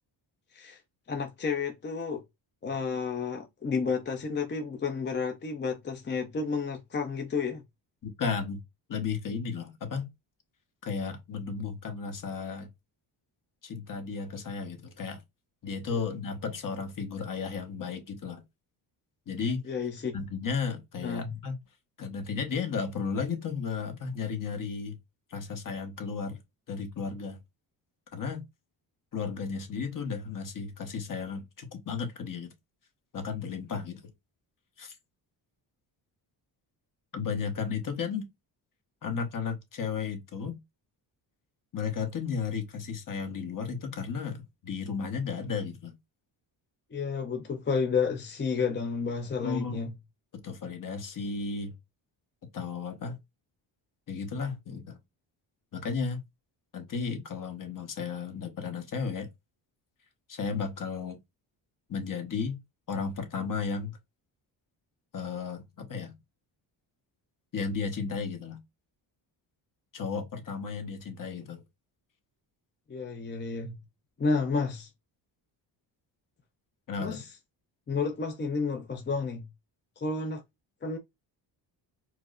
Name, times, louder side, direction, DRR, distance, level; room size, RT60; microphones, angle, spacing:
voice 1, 1.1-2.2 2.6-7.6 15.9-16.0 19.7-20.2 21.0-21.3 46.9-49.9 72.9-73.8 74.2-74.9 77.0-77.3 77.9-79.4 80.0-80.4 80.8-81.0, left 5 dB, 25° left, 0.5 m, -31 dB
voice 2, 8.0-8.6 8.9-10.1 10.8-12.7 13.6-15.2 15.6-18.4 19.3-19.6 20.1-21.6 22.0-25.0 25.3-26.4 26.7-27.4 28.1-28.4 29.1-32.5 33.1-34.1 34.8-34.9 37.1-38.3 39.0-40.6 41.7-45.9 49.4-49.8 50.4-51.8 52.5-53.2 54.1-55.0 55.7-56.2 56.7-59.3 60.3-61.2 61.9-62.6 62.9-64.0 65.1-66.1 67.5-68.6 69.9-71.6 76.9-77.2, left 5 dB, 45° left, 1.0 m, -34 dB
4.5 x 2.0 x 2.3 m
cardioid pair, 105°, 46 cm